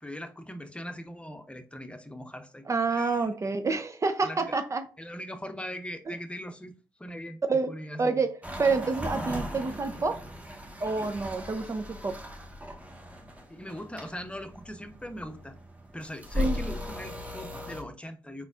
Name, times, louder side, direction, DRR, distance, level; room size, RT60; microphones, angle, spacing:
voice 1, 0.0-2.6 2.9-3.3 4.2-4.4 5.0-6.7 7.0-7.4 7.7-8.3 13.5-15.6 15.9-18.5, equal, 10° left, 0.9 m, -40 dB
voice 2, 2.7-4.9 6.1-6.2 7.5-10.3 10.8-12.2 16.4-16.7, right 4 dB, 35° right, 0.6 m, -28 dB
sound 1, 8.4-17.8, left 1 dB, 15° right, 1.3 m, -38 dB
4.3 x 4.1 x 2.4 m
hypercardioid pair, 40°, 9 cm